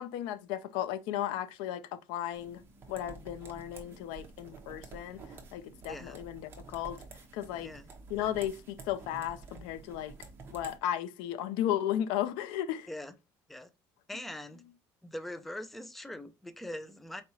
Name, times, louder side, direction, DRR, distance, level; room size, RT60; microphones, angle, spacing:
voice 1, 0.0-2.6 2.9-5.2 5.5-7.0 7.3-7.7 8.1-10.1 10.5-12.9, left 11 dB, 90° left, 0.5 m, -35 dB
sound 1, 2.3-10.8, right 4 dB, 30° right, 0.9 m, -50 dB
voice 2, 5.9-6.2 7.6-7.9 12.9-13.1 13.5-13.7 14.1-14.6 15.0-17.2, left 1 dB, ahead, 0.3 m, -42 dB
4.5 x 2.9 x 2.7 m
cardioid pair, 145°, 8 cm